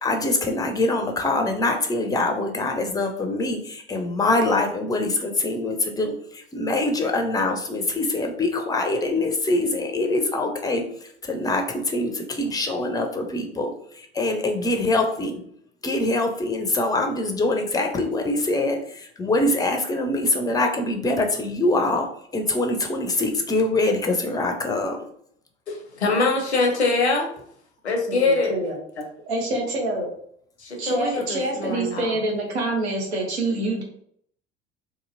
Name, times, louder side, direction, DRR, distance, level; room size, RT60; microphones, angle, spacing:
voice 1, 0.0-15.4 15.8-25.1, left 2 dB, 10° left, 4 dB, 0.5 m, -24 dB
voice 2, 25.7-27.3 27.9-28.5 30.7-32.1, left 3 dB, 85° left, 2 dB, 0.7 m, -23 dB
voice 3, 28.1-28.8 29.3-30.1 30.8-33.8, right 2 dB, 80° right, -1 dB, 0.9 m, -26 dB
2.9 x 2.6 x 2.5 m, 0.66 s
figure-of-eight pair, 65°, 33 cm